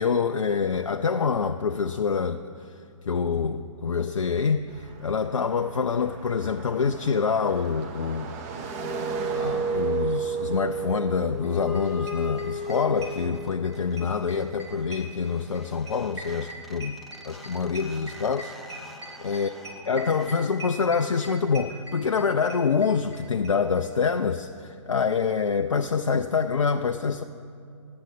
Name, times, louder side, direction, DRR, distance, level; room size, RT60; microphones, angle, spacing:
voice 1, 0.0-2.4 3.1-8.3 9.3-17.0 17.3-18.5 19.2-19.5 19.9-27.2, left 5 dB, 75° left, 0.4 m, -26 dB
Car passing by, 4.7-15.8, right 5 dB, 30° right, 0.9 m, -41 dB
sound 1, 8.5-13.8 15.7-15.8 15.9-21.4, right 3 dB, ahead, 0.5 m, -34 dB
sound 2, 11.4-11.5 11.8-11.9 12.1-13.7 14.0-23.2 23.4-23.5 23.8-23.9 24.1-24.2, right 1 dB, 55° right, 2.9 m, -41 dB
9.4 x 7.7 x 8.3 m
figure-of-eight pair, 125°, 17 cm